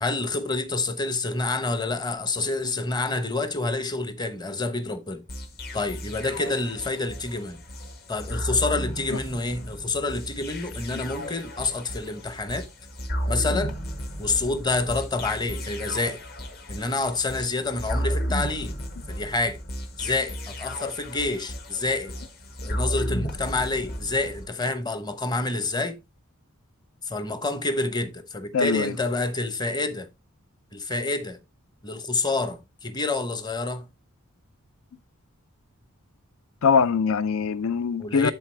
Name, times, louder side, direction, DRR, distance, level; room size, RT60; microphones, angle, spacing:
voice 1, 0.0-5.2 5.7-7.6 8.1-12.6 13.3-13.7 14.2-16.2 16.7-18.7 19.1-19.6 20.0-22.1 22.6-26.0 27.0-30.1 30.7-31.4 31.8-33.9 38.0-38.3, left 3 dB, 20° left, 0.9 m, -28 dB
sound 1, 5.3-24.5, equal, 45° left, 1.5 m, -33 dB
voice 2, 28.5-28.9 36.6-38.3, left 5 dB, 65° left, 0.5 m, -22 dB
12.0 x 4.1 x 3.3 m
head